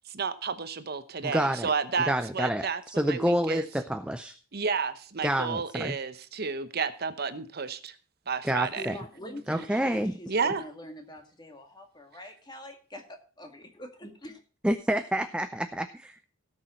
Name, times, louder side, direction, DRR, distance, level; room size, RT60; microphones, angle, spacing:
voice 1, 0.1-2.8 3.1-3.6 4.5-7.9 8.3-8.8 10.3-10.6, right 5 dB, 50° right, 0.9 m, -31 dB
voice 2, 1.2-1.7 2.1-4.4 5.2-6.0 8.4-8.9 9.5-10.2 14.6-16.2, right 1 dB, 5° right, 0.5 m, -28 dB
voice 3, 8.8-14.4, equal, 20° left, 2.0 m, -44 dB
17.5 x 6.4 x 4.4 m
head